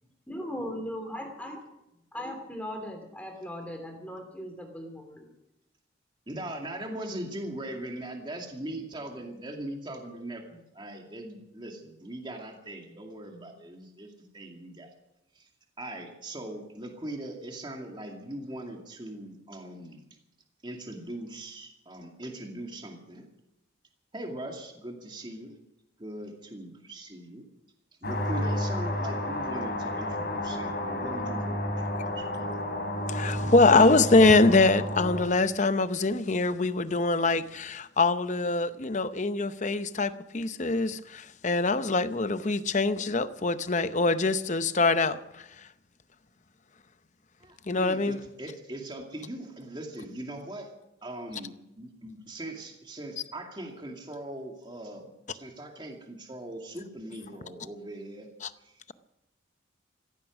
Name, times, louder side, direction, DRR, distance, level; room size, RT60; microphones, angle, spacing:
voice 1, 0.3-1.6 2.1-5.3, equal, 5° left, 2.8 m, -38 dB
voice 2, 6.3-14.9 15.3-15.5 15.8-20.0 20.6-23.3 24.1-25.6 26.0-27.4 28.0-32.6 47.4-50.7 51.0-58.3 58.6-58.8, right 1 dB, 25° right, 2.4 m, -40 dB
sound 1, 28.0-35.2, left 1 dB, 55° left, 3.0 m, -31 dB
voice 3, 33.1-45.4 47.7-48.2 58.4-58.5, left 3 dB, 40° left, 0.7 m, -24 dB
15.5 x 15.0 x 6.2 m
head